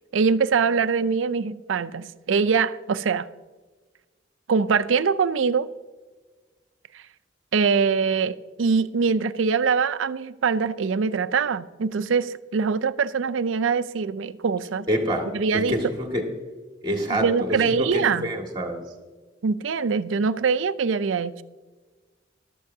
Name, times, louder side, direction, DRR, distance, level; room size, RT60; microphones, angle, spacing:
voice 1, 0.1-3.3 4.5-5.7 6.9-7.0 7.5-14.9 15.3-15.8 17.2-18.3 19.4-21.4, right 5 dB, 85° right, 0.5 m, -23 dB
voice 2, 14.9-15.3 15.5-16.2 16.8-18.8, equal, 25° right, 1.9 m, -26 dB
14.5 x 12.0 x 2.7 m
head